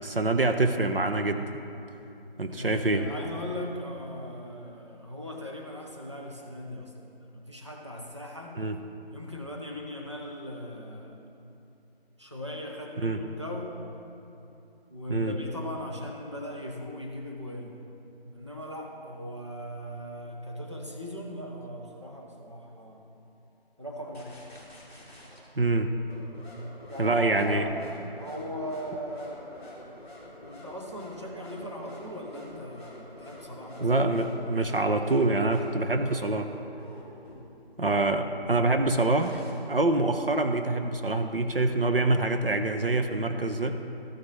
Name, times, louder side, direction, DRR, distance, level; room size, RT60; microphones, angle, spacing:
voice 1, 0.0-1.5 2.4-3.1 8.6-8.8 13.0-13.2 15.1-15.4 25.6-25.9 27.0-27.6 33.8-36.5 37.8-43.8, right 2 dB, 65° right, 6 dB, 0.7 m, -25 dB
voice 2, 2.4-6.9 7.3-8.7 9.1-11.2 12.2-13.8 14.9-17.9 18.3-23.0 23.8-24.5 26.9-27.9 28.2-29.9 30.4-33.9, left 1 dB, 30° right, -1 dB, 0.7 m, -39 dB
sound 1, 24.1-25.4 26.1-37.3 39.1-39.5, left 1 dB, ahead, 1.8 m, -47 dB
14.5 x 6.2 x 3.2 m, 2.9 s
figure-of-eight pair, 175°, 31 cm